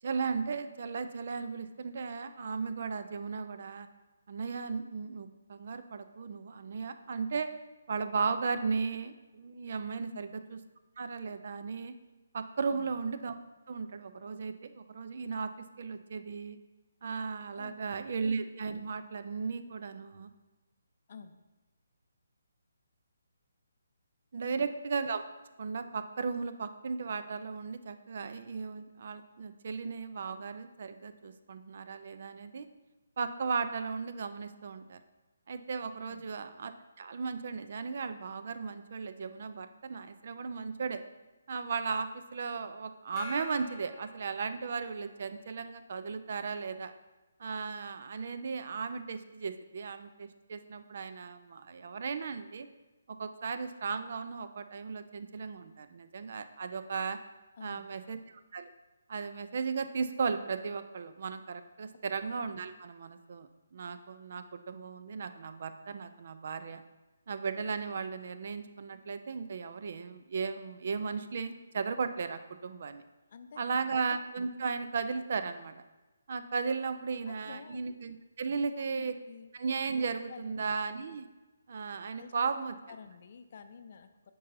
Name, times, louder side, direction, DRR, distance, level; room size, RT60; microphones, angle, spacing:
voice 1, 0.0-3.9 4.3-7.5 7.9-10.6 11.0-12.0 12.3-13.4 13.7-15.5 15.8-16.6 17.0-20.3 24.3-25.2 25.6-32.7 33.2-35.0 35.5-36.7 37.0-41.0 41.5-46.9 47.4-52.7 53.1-57.2 57.6-58.7 59.1-66.8 67.3-73.0 73.6-75.8 76.3-79.1 79.5-81.3 81.7-82.7, right 5 dB, 55° right, 10 dB, 0.5 m, -36 dB
voice 2, 10.0-10.4 12.7-12.9 17.5-17.8 21.1-21.4 24.4-24.7 36.0-36.3 57.6-58.0 62.0-62.1 73.3-74.0 77.3-77.8 78.5-79.5 80.3-80.7 82.2-82.4 82.9-84.3, left 6 dB, 50° left, 9 dB, 0.5 m, -50 dB
Gong, 43.2-45.2, left 4 dB, 10° left, 0.9 m, -46 dB
8.3 x 5.4 x 2.7 m, 1.1 s
figure-of-eight pair, 150°, 0 cm